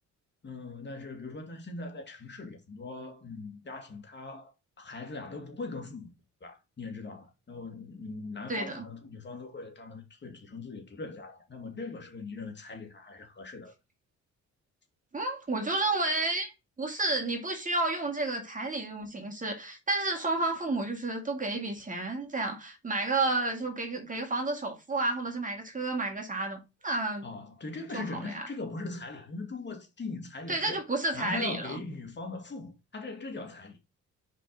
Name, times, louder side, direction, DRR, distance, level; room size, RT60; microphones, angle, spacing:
voice 1, 0.4-6.1 6.4-13.7 27.2-30.8 31.1-33.8, left 3 dB, 35° left, 2.2 m, -40 dB
voice 2, 8.5-8.9 15.1-16.5 16.8-27.2 27.9-28.4 30.5-31.7, right 2 dB, 25° right, 2.1 m, -31 dB
5.1 x 4.3 x 5.2 m
cardioid pair, 90°, 30 cm